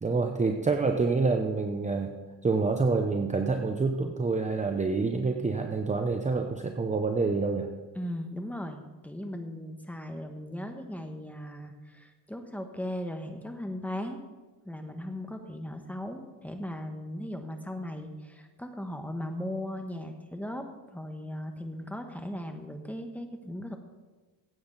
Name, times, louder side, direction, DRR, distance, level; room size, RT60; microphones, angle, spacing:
voice 1, 0.0-7.7, right 4 dB, 15° right, 5 dB, 0.7 m, -27 dB
voice 2, 7.9-14.2 14.6-23.8, left 1 dB, 5° left, 5 dB, 1.2 m, -38 dB
16.0 x 8.6 x 4.1 m, 1.3 s
cardioid pair, 115°, 44 cm